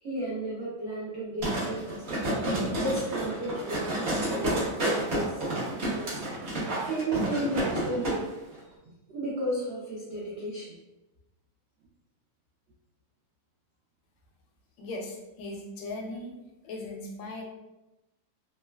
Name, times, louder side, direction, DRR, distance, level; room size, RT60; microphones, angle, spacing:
voice 1, 0.0-2.0 2.5-3.9 4.3-5.3 5.8-6.2 6.8-8.2 8.8-10.7, right 1 dB, 75° right, -7 dB, 0.6 m, -33 dB
sound 1, 1.4-8.2 8.5-8.6, right 1 dB, 50° right, 0.9 m, -30 dB
voice 2, 14.8-16.4 16.6-17.4, left 2 dB, 90° left, 1 dB, 1.3 m, -38 dB
3.0 x 2.2 x 2.2 m, 0.98 s
omnidirectional pair, 1.9 m